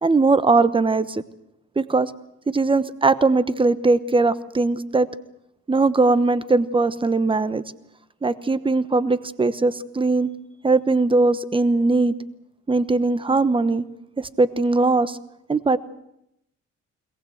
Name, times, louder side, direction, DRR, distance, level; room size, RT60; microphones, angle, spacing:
voice 1, 0.0-1.2 1.8-2.1 2.5-5.1 5.7-7.6 8.2-10.3 10.6-12.1 12.7-13.8 14.2-15.2 15.5-15.8, right 3 dB, 15° right, 15 dB, 1.1 m, -20 dB
22.0 x 19.0 x 8.0 m, 0.81 s
cardioid pair, 90°, 30 cm